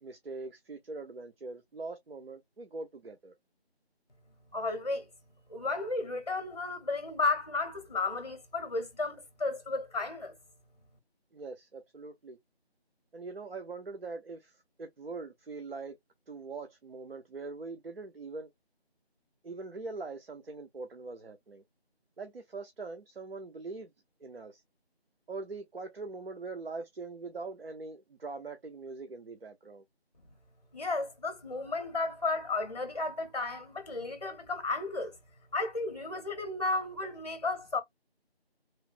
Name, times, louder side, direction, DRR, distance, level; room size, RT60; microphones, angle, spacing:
voice 1, 0.0-3.3 11.3-12.4 13.1-16.0 16.3-18.5 19.4-21.6 22.2-23.9 24.2-24.6 25.3-29.8, right 3 dB, 65° right, 0.6 m, -42 dB
voice 2, 4.5-5.1 5.5-10.3 30.7-35.2 35.5-37.8, left 3 dB, 40° left, 0.7 m, -33 dB
3.1 x 2.1 x 2.4 m
figure-of-eight pair, 165°, 32 cm